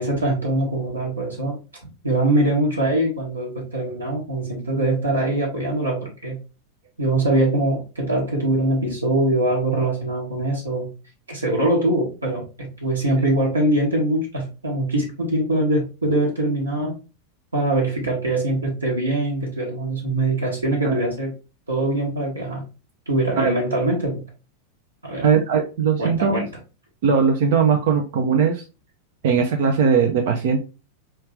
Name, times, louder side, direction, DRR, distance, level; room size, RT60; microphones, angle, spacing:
voice 1, 0.0-1.6 2.0-6.3 7.0-10.9 11.3-12.4 12.8-17.0 17.5-21.3 21.7-22.6 23.1-24.2 25.0-25.3 26.0-26.5, right 1 dB, 75° right, -3 dB, 1.1 m, -22 dB
voice 2, 25.2-26.4 27.0-28.6 29.2-30.6, right 6 dB, 55° right, 3 dB, 0.4 m, -19 dB
3.1 x 2.4 x 3.2 m, 0.31 s
figure-of-eight pair, 90°, 0 cm